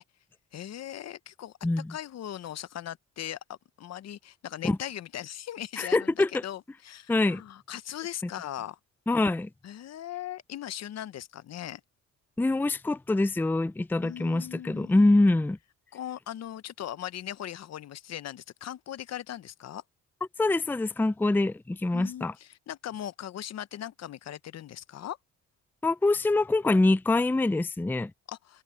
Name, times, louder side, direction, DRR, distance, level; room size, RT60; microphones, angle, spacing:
voice 1, 0.5-1.5 1.9-8.8 9.6-11.8 14.0-15.1 15.9-19.8 21.9-25.2 28.3-28.6, left 11 dB, 60° left, 0.8 m, -39 dB
voice 2, 1.6-1.9 4.6-4.8 5.8-6.4 7.1-7.4 9.1-9.5 12.4-15.6 20.4-22.3 25.8-28.1, left 2 dB, 5° left, 0.5 m, -24 dB
cardioid pair, 90°, 30 cm